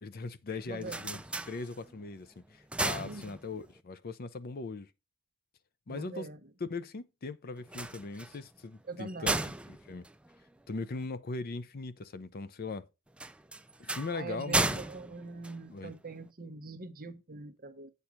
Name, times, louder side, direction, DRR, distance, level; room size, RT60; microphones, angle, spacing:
voice 1, 0.0-1.2 1.5-4.9 5.9-6.3 6.6-9.4 9.7-10.1 10.7-12.9 13.8-14.8 15.7-15.9, left 3 dB, 45° left, 0.6 m, -39 dB
sound 1, 0.6-2.1 2.5-3.8 7.6-11.0 13.1-16.2, right 2 dB, 5° right, 0.3 m, -35 dB
voice 2, 0.6-1.1 2.9-3.3 5.9-6.5 8.9-9.4 14.1-17.9, right 3 dB, 40° right, 0.9 m, -43 dB
8.4 x 4.4 x 4.9 m
head